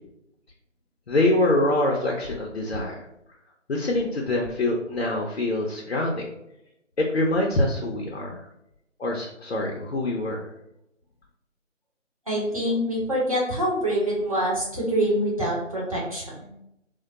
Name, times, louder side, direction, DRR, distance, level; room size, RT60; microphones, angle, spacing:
voice 1, 1.1-2.9 3.7-6.3 7.0-8.3 9.0-10.5, left 1 dB, 60° left, -1 dB, 0.6 m, -24 dB
voice 2, 12.3-16.5, equal, 30° right, -5 dB, 0.7 m, -25 dB
2.2 x 2.2 x 3.8 m, 0.83 s
figure-of-eight pair, 165°, 38 cm